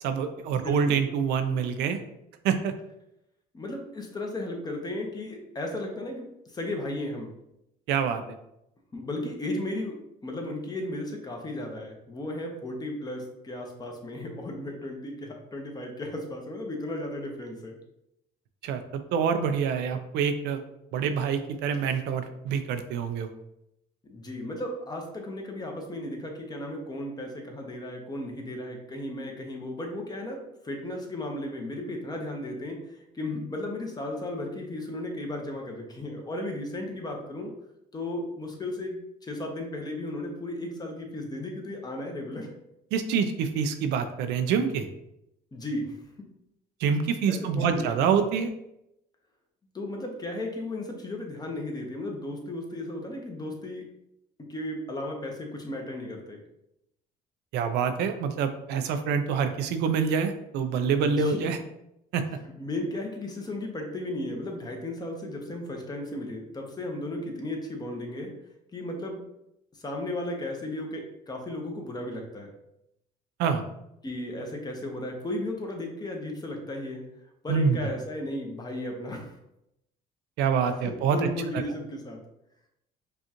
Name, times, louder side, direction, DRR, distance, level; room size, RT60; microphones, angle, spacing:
voice 1, 0.0-2.0 2.4-2.7 7.9-8.2 18.6-18.8 19.1-20.6 20.9-23.3 42.9-44.9 46.8-48.5 57.5-61.6 62.1-62.2 73.4-73.6 77.5-77.8 80.4-81.2, right 6 dB, 85° right, 8 dB, 0.4 m, -26 dB
voice 2, 0.5-1.0 3.5-7.3 8.9-10.0 10.2-17.8 24.1-37.5 37.9-42.5 45.5-46.0 47.3-47.9 49.7-53.9 54.5-56.4 61.0-61.5 62.4-68.3 68.7-69.2 69.8-72.5 74.0-77.0 77.4-79.3 80.8-82.2, left 1 dB, 25° left, 1 dB, 0.9 m, -35 dB
5.1 x 2.4 x 2.9 m, 0.82 s
cardioid pair, 110°, 17 cm